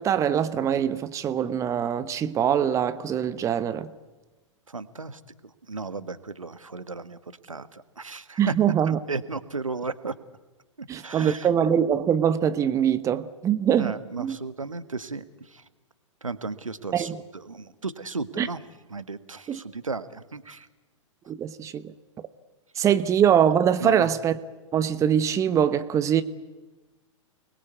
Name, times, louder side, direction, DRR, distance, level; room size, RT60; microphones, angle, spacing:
voice 1, 0.0-3.9 8.4-9.0 10.9-14.4 16.9-17.2 18.4-18.5 19.5-19.6 21.3-21.9 22.8-24.4 24.7-26.2, right 9 dB, 20° right, 1.1 m, -23 dB
voice 2, 4.7-5.2 5.7-7.2 7.5-8.5 8.9-10.1 10.9-11.5 13.8-15.2 16.2-18.6 18.9-20.7 23.8-24.1, right 4 dB, 80° right, 1.6 m, -34 dB
29.5 x 21.5 x 8.2 m
figure-of-eight pair, 110°, 17 cm